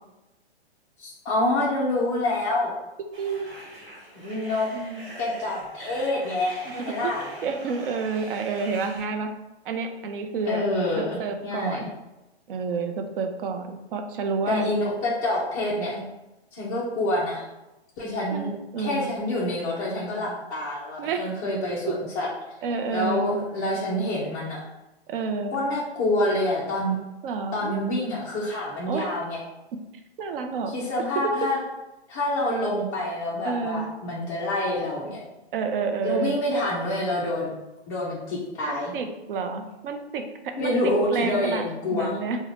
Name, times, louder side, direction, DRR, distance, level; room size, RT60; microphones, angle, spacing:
voice 1, 1.0-2.7 4.1-4.7 5.2-7.2 10.5-11.9 14.5-15.9 16.5-17.4 18.0-18.5 18.8-22.3 22.9-24.6 25.5-26.9 27.5-29.4 30.7-31.6 32.1-35.2 36.0-37.5 37.9-38.9 40.6-42.1, left 1 dB, 15° left, -8 dB, 0.3 m, -27 dB
sound 1, 3.1-9.0, right 1 dB, 30° right, 1.3 m, -43 dB
voice 2, 3.2-3.5 4.7-5.1 6.7-9.3 9.6-10.6 11.0-11.8 12.5-14.7 15.8-16.1 18.3-19.2 21.0-21.3 21.9-22.0 22.6-23.4 25.1-25.6 27.2-27.7 28.9-29.1 29.7-29.8 30.2-30.7 31.2-31.5 33.4-33.9 35.5-36.4 38.7-40.8 41.1-41.6 41.9-42.4, right 4 dB, 55° right, 6 dB, 0.5 m, -29 dB
3.5 x 2.1 x 3.3 m, 1.0 s
hypercardioid pair, 135°, 32 cm